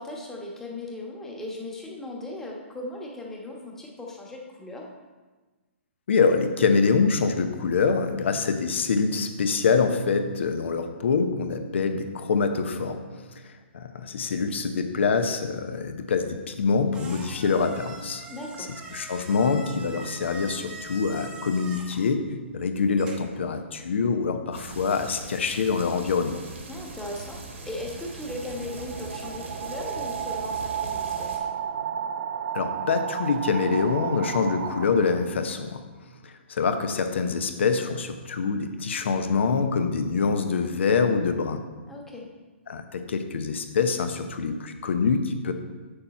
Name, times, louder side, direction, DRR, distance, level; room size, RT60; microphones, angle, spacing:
voice 1, 0.0-4.8 18.3-18.7 26.7-27.4 27.6-31.4 41.9-42.3, left 2 dB, 5° left, -2 dB, 1.1 m, -37 dB
voice 2, 6.1-13.0 13.7-18.2 18.9-22.3 22.5-26.4 32.5-35.8 36.2-41.6 42.7-45.5, left 5 dB, 65° left, 8 dB, 0.8 m, -25 dB
sound 1, 16.3-23.4, right 3 dB, 15° right, 0.8 m, -44 dB
sound 2, 24.5-31.4, right 3 dB, 80° right, 1.7 m, -41 dB
sound 3, 27.6-35.4, right 8 dB, 55° right, 0.5 m, -33 dB
7.0 x 6.8 x 4.2 m, 1.3 s
hypercardioid pair, 145°, 7 cm